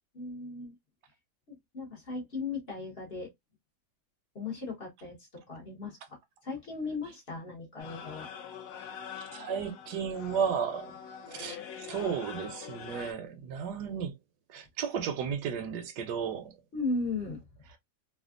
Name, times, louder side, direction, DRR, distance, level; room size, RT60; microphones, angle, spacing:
voice 1, 0.1-0.7 1.5-3.3 4.3-8.3 16.7-17.5, left 3 dB, 40° left, 1.1 m, -37 dB
sound 1, 7.8-13.1, left 7 dB, 65° left, 1.0 m, -44 dB
voice 2, 9.2-10.9 11.3-14.1 14.5-16.5, right 7 dB, 75° right, 1.3 m, -34 dB
3.3 x 2.4 x 2.4 m
omnidirectional pair, 1.8 m